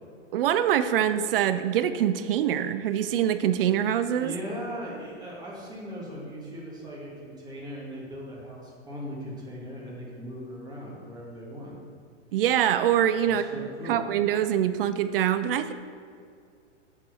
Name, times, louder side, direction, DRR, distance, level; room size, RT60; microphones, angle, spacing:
voice 1, 0.3-4.3 12.3-15.7, right 10 dB, 50° right, 12 dB, 0.5 m, -24 dB
voice 2, 4.2-11.7 13.2-14.1, equal, 10° right, -5 dB, 2.3 m, -39 dB
8.5 x 4.6 x 6.7 m, 2.2 s
hypercardioid pair, 130°, 37 cm